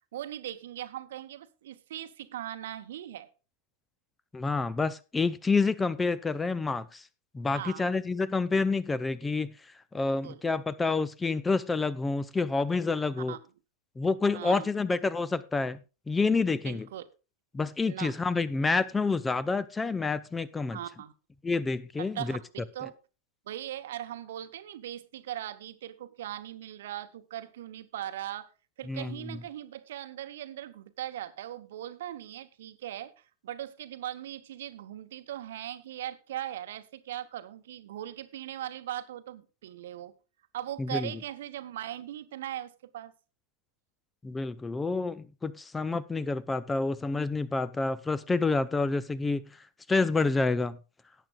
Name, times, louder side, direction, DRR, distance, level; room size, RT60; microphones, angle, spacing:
voice 1, 0.1-3.3 7.5-7.9 10.2-10.4 13.2-13.4 14.3-14.7 16.6-17.0 17.8-18.1 20.7-21.1 22.0-22.9 23.5-28.5 28.8-40.1 40.5-43.1, right 12 dB, 60° right, 0.9 m, -39 dB
voice 2, 4.3-7.0 7.3-13.4 14.0-15.8 16.1-16.9 17.5-20.8 21.4-22.4 28.9-29.4 40.8-41.1 44.2-49.4 49.9-50.8, left 3 dB, 10° left, 0.5 m, -28 dB
17.5 x 8.6 x 2.4 m
figure-of-eight pair, 90°, 0 cm